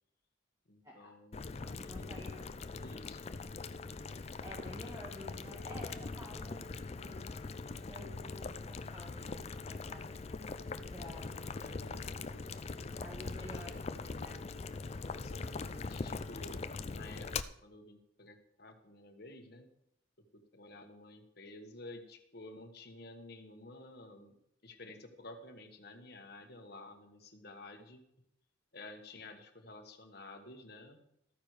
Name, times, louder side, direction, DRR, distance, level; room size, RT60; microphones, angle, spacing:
voice 1, 0.7-1.7 2.0-2.4 2.7-3.4 11.6-12.0 15.1-19.7 20.3-24.3 24.6-28.0 28.7-31.0, left 2 dB, 50° left, 4 dB, 1.3 m, -52 dB
Boiling, 1.3-17.4, left 4 dB, 30° left, 0.4 m, -42 dB
voice 2, 1.6-2.6 4.1-7.3 7.7-10.1 10.9-12.2 13.0-14.4, equal, 15° right, -3 dB, 1.5 m, -51 dB
13.5 x 9.1 x 4.9 m, 0.76 s
head